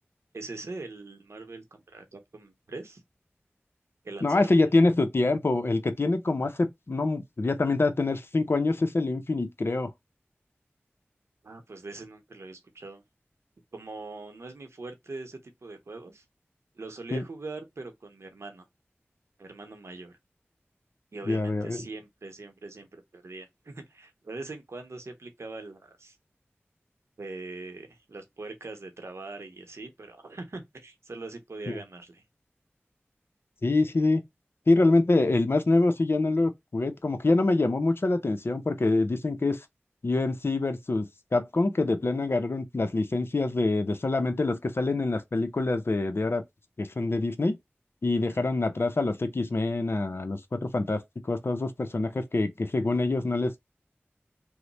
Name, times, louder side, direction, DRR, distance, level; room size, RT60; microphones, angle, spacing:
voice 1, 0.3-3.0 4.0-4.7 11.4-13.0 13.7-16.2 16.7-18.6 19.4-20.2 21.1-26.2 27.2-32.2 48.3-48.4, right 3 dB, 85° right, 0.8 m, -42 dB
voice 2, 4.2-9.9 17.1-17.2 21.3-21.8 31.7-31.8 33.6-34.2 34.7-39.6 40.0-46.4 46.8-47.5 48.0-53.6, left 2 dB, 60° left, 0.6 m, -25 dB
3.1 x 2.1 x 3.9 m
wide cardioid pair, 45°, 5 cm